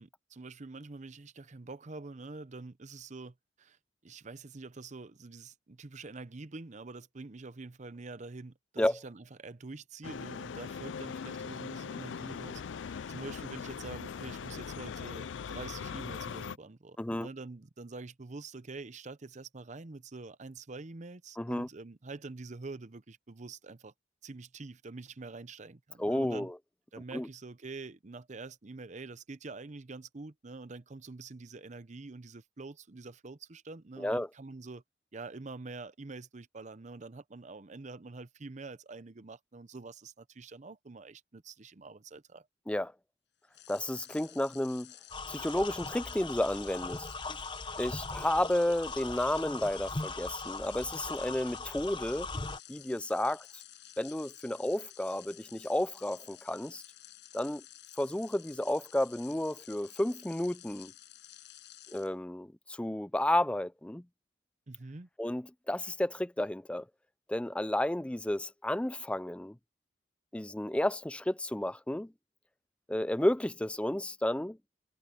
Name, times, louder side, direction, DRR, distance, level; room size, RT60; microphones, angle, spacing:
voice 1, 0.0-3.8 4.0-23.9 24.2-26.5 26.9-34.8 35.1-42.5 64.7-65.1, right 3 dB, 40° right, 0.7 m, -46 dB
sound 1, 10.0-16.6, left 6 dB, 80° left, 0.4 m, -40 dB
voice 2, 17.0-17.3 21.4-21.7 26.0-26.5 27.1-27.3 34.0-34.3 42.7-42.9 43.7-44.9 45.3-47.1 47.8-52.3 52.7-53.5 54.0-56.8 57.3-57.6 58.0-60.9 61.9-64.0 65.2-66.8 67.3-69.6 70.3-72.1 72.9-74.6, left 1 dB, 5° left, 0.4 m, -32 dB
sound 2, 43.5-62.1, left 13 dB, 65° left, 8.0 m, -53 dB
sound 3, 45.1-52.6, left 3 dB, 25° left, 0.8 m, -40 dB
head